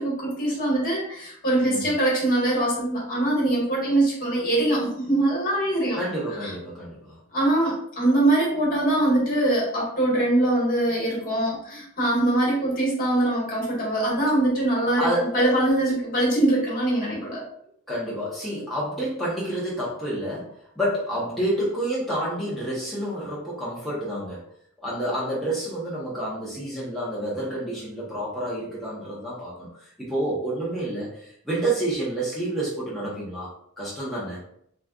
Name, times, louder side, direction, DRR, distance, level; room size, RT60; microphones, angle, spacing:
voice 1, 0.0-6.0 6.4-6.5 7.3-17.4, right 1 dB, 40° left, -4 dB, 1.5 m, -23 dB
voice 2, 5.9-7.2 15.0-15.4 17.9-24.4 24.8-34.4, right 1 dB, ahead, -8 dB, 0.9 m, -29 dB
4.1 x 3.6 x 2.4 m, 0.68 s
head